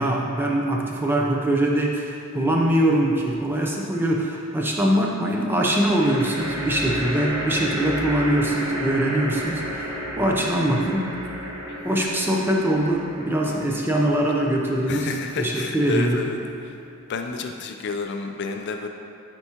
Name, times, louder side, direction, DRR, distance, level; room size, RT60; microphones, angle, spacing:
voice 1, 0.0-11.1 11.8-15.1 15.4-16.2, right 1 dB, 10° right, -1 dB, 0.5 m, -22 dB
sound 1, 2.4-3.0 5.5-16.9, equal, 90° right, 1.1 m, -33 dB
voice 2, 13.5-13.9 14.9-16.7 17.1-18.9, left 4 dB, 50° left, 5 dB, 0.4 m, -31 dB
7.9 x 4.5 x 2.9 m, 2.5 s
head